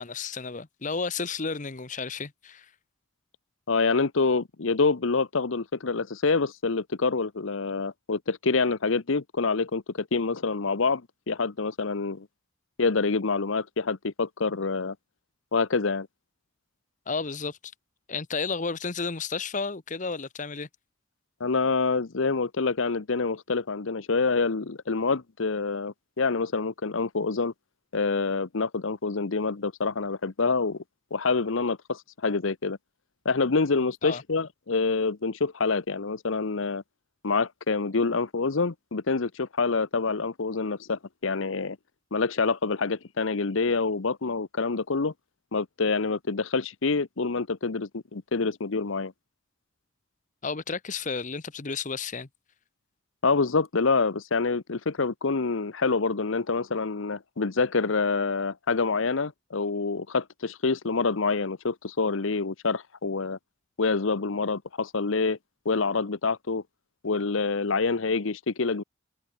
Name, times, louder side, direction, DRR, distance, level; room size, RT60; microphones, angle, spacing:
voice 1, 0.0-2.7 17.1-17.6 18.1-20.7 34.0-34.2 50.4-52.3, left 4 dB, 40° left, 1.0 m, -32 dB
voice 2, 3.7-11.0 11.3-12.3 12.8-14.9 15.5-16.1 21.4-27.5 27.9-30.8 31.1-32.8 33.2-36.8 37.2-41.8 42.1-45.1 45.5-49.1 53.2-63.4 63.8-65.4 65.6-66.6 67.0-68.8, left 4 dB, 75° left, 0.9 m, -26 dB
head